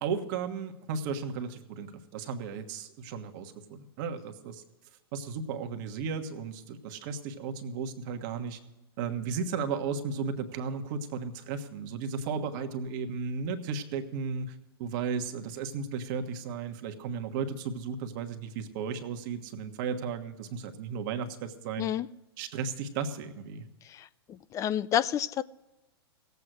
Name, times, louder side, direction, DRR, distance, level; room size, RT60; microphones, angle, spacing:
voice 1, 0.0-4.6 5.1-8.6 9.0-21.9 22.4-23.6, right 5 dB, 50° right, 7 dB, 1.4 m, -35 dB
voice 2, 24.5-25.4, left 10 dB, 25° left, 19 dB, 0.3 m, -28 dB
17.5 x 8.2 x 6.2 m, 0.99 s
hypercardioid pair, 110°, 13 cm